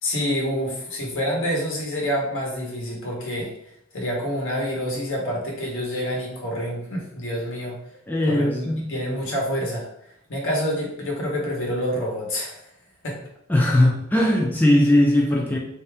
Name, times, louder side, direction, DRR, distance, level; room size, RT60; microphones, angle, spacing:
voice 1, 0.0-3.5 3.9-7.8 8.3-9.9 10.3-12.6 13.0-13.2, equal, 65° left, -1 dB, 1.2 m, -27 dB
voice 2, 8.1-8.9 13.5-15.6, left 1 dB, 10° left, -2 dB, 0.4 m, -19 dB
3.4 x 2.8 x 3.4 m, 0.73 s
head